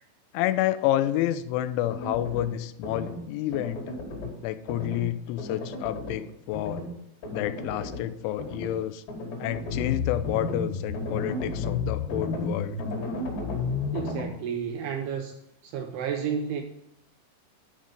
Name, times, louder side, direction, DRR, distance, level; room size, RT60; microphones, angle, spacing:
voice 1, 0.3-3.9 4.4-6.8 7.3-9.0 9.4-12.8, left 13 dB, 90° left, 12 dB, 3.0 m, -29 dB
sound 1, 1.9-2.5 2.8-3.2 3.5-4.3 4.7-5.0 5.4-6.2 6.5-6.9 7.2-8.0 8.4-8.7 9.1-14.2, left 4 dB, 55° left, 3.6 m, -32 dB
voice 2, 13.9-16.6, right 7 dB, 80° right, 5 dB, 2.4 m, -32 dB
11.0 x 5.3 x 5.2 m, 0.80 s
omnidirectional pair, 5.3 m